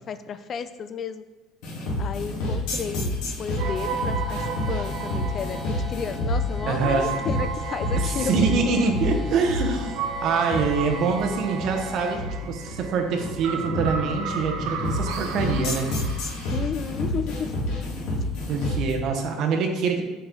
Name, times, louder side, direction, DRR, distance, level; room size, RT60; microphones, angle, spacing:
voice 1, 0.1-1.2 2.0-8.5 16.5-17.5, left 6 dB, 35° left, 11 dB, 0.4 m, -33 dB
sound 1, 1.6-18.9, left 1 dB, 75° left, 1.9 m, -29 dB
sound 2, 3.6-12.1, left 2 dB, ahead, 1.3 m, -41 dB
sound 3, 3.6-16.6, right 6 dB, 80° right, 0.6 m, -35 dB
voice 2, 6.7-7.1 7.9-16.3 18.5-20.0, right 5 dB, 50° right, 4 dB, 0.8 m, -25 dB
5.1 x 4.8 x 3.8 m, 1.2 s
cardioid pair, 135°, 0 cm